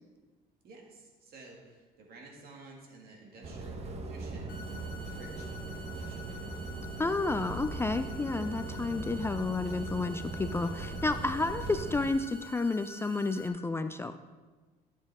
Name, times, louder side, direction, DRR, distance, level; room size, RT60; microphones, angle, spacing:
voice 1, 0.6-4.6 4.9-6.7, right 2 dB, 65° right, -1 dB, 2.3 m, -52 dB
sound 1, 3.4-12.1, right 3 dB, 40° right, 1.0 m, -40 dB
sound 2, 4.5-13.5, left 2 dB, 60° left, 1.0 m, -49 dB
voice 2, 7.0-14.2, left 3 dB, 15° left, 9 dB, 0.3 m, -31 dB
12.0 x 7.3 x 3.6 m, 1.3 s
cardioid pair, 110°, 17 cm